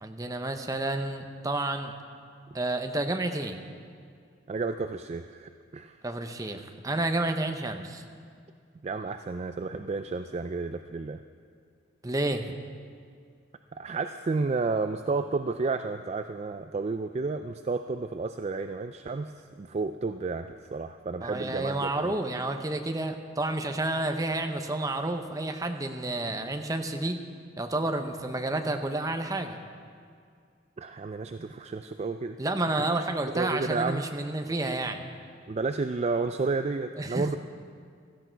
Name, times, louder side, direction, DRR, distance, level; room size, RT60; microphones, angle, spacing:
voice 1, 0.0-1.9 2.5-3.6 6.0-8.0 12.0-12.5 21.2-27.2 27.6-29.6 32.4-35.1 37.0-37.4, right 2 dB, 20° right, 5 dB, 0.8 m, -30 dB
voice 2, 4.5-6.0 8.8-11.2 13.7-22.1 30.8-32.4 33.3-34.0 35.5-37.4, right 3 dB, 35° right, 8 dB, 0.3 m, -31 dB
16.0 x 13.5 x 4.6 m, 2.2 s
head